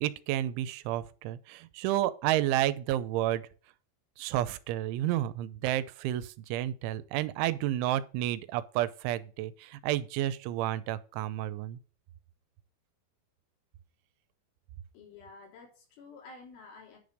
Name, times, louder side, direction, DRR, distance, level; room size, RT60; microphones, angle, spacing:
voice 1, 0.0-3.4 4.2-11.8, right 13 dB, 90° right, 3.1 m, -31 dB
voice 2, 14.9-17.0, left 4 dB, 90° left, 5.7 m, -50 dB
10.0 x 5.2 x 6.5 m
omnidirectional pair, 5.4 m